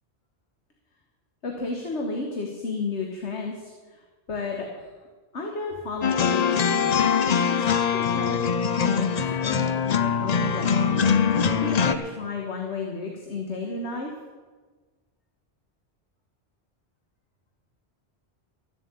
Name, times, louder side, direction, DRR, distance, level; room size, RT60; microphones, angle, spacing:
voice 1, 1.4-4.0 4.3-4.9 5.3-10.9 11.6-14.1, left 3 dB, 80° left, 1 dB, 1.7 m, -33 dB
sound 1, 6.0-12.0, left 7 dB, 45° left, 0.6 m, -23 dB
13.5 x 7.6 x 8.2 m, 1.4 s
omnidirectional pair, 1.1 m